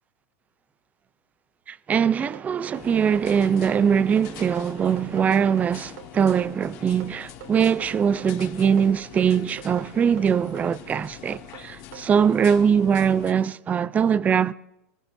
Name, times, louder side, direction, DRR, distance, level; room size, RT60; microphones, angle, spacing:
voice 1, 1.7-14.5, right 7 dB, 20° right, 0.4 m, -22 dB
sound 1, 2.3-12.1, right 11 dB, 70° right, 2.5 m, -45 dB
sound 2, 2.7-13.3, left 10 dB, 45° left, 1.5 m, -44 dB
25.0 x 15.0 x 2.6 m
supercardioid pair, 130°, 8 cm